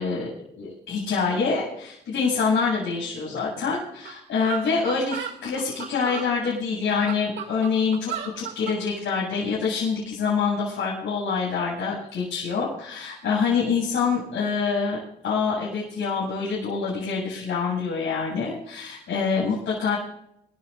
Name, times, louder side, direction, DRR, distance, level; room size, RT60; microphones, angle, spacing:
voice 1, 0.0-15.0 15.2-20.0, left 5 dB, 70° left, -6 dB, 8.0 m, -26 dB
sound 1, 3.7-3.8 4.1-4.2 4.4-6.3 6.8-8.8, right 9 dB, 70° right, 2.7 m, -34 dB
26.5 x 14.5 x 2.6 m, 0.78 s
cardioid pair, 90°, 20 cm